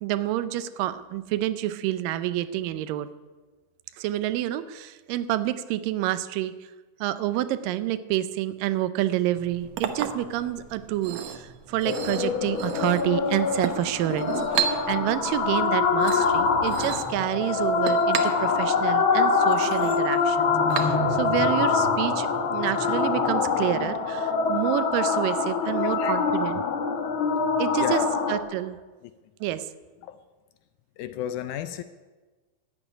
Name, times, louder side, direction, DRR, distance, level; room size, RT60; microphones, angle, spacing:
voice 1, 0.0-3.1 4.0-6.5 7.0-26.6 27.6-28.0 28.3-28.8 29.4-29.7, right 13 dB, 85° right, 2.3 m, -28 dB
Chink clink, 9.3-21.4, right 9 dB, 70° right, 1.8 m, -34 dB
sound 1, 11.9-28.4, left 4 dB, 55° left, 1.4 m, -24 dB
voice 2, 25.6-26.2 27.8-28.2 30.0-30.2 31.0-31.8, left 11 dB, 80° left, 1.9 m, -32 dB
12.0 x 8.1 x 9.9 m
omnidirectional pair, 3.9 m